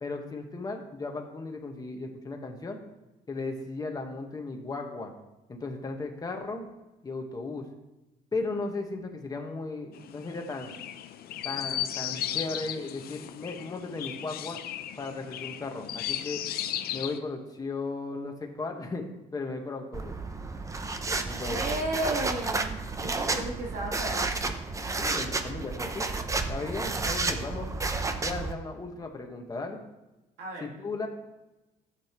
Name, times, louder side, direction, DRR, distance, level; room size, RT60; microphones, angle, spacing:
voice 1, 0.0-2.8 3.3-5.1 5.5-6.7 7.0-7.7 8.3-10.8 11.4-14.6 15.0-16.4 16.9-19.0 19.3-20.1 21.2-21.8 25.0-26.1 26.5-27.7 28.2-29.8 30.6-31.1, left 3 dB, 20° left, 2 dB, 1.4 m, -36 dB
Chirp tweet, 9.9-17.2, left 11 dB, 65° left, 0.6 m, -36 dB
sound 1, 19.9-28.5, right 3 dB, 20° right, 0.7 m, -31 dB
voice 2, 21.4-24.4 30.4-30.7, right 2 dB, 75° right, -2 dB, 1.9 m, -34 dB
12.5 x 7.9 x 3.1 m, 1.0 s
cardioid pair, 110°, 17 cm